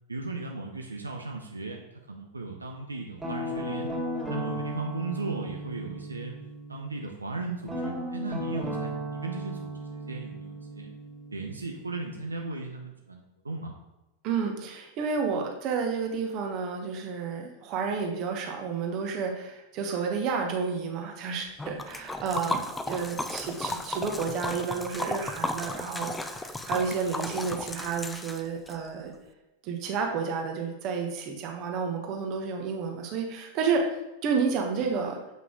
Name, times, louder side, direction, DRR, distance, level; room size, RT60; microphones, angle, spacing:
voice 1, 0.1-1.8 2.1-3.9 4.3-6.3 6.7-10.9 11.3-13.7, right 3 dB, 80° right, 1 dB, 0.8 m, -36 dB
Guitar, 3.2-7.0 7.6-12.4, right 1 dB, 15° right, 2.2 m, -36 dB
voice 2, 14.2-29.1 29.6-33.8 34.2-35.2, right 5 dB, 40° right, 3 dB, 1.4 m, -31 dB
Liquid, 21.6-28.8, left 2 dB, 10° left, 0.5 m, -34 dB
7.7 x 5.7 x 3.8 m, 0.98 s
figure-of-eight pair, 90°, 0 cm